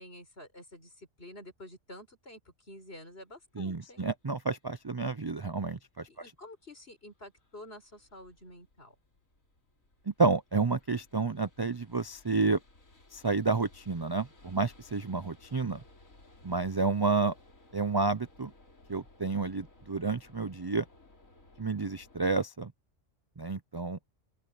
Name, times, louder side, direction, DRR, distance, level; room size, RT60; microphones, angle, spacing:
voice 1, 0.0-2.4 2.7-4.1 6.1-8.9, left 1 dB, 50° left, 6.0 m, -49 dB
sound 1, 2.7-22.3, left 2 dB, 85° left, 4.2 m, -60 dB
voice 2, 3.6-6.1 10.1-12.6 13.1-15.8 16.4-17.3 17.7-18.5 18.9-20.8 21.6-22.7 23.4-24.0, right 4 dB, 40° right, 0.3 m, -30 dB
open air
omnidirectional pair, 1.4 m